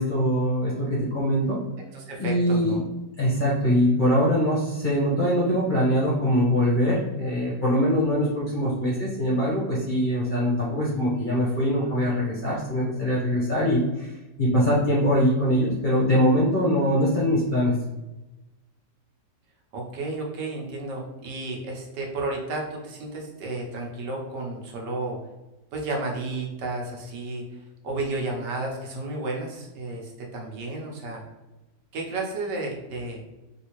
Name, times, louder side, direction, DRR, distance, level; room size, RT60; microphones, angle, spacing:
voice 1, 0.0-1.6 2.2-2.8 3.2-17.7, equal, 45° left, -6 dB, 0.6 m, -23 dB
voice 2, 1.9-2.8 19.7-25.2 25.7-27.4 27.8-31.2 31.9-33.2, right 2 dB, 80° right, -1 dB, 1.4 m, -32 dB
3.4 x 2.7 x 2.9 m, 1.0 s
omnidirectional pair, 1.8 m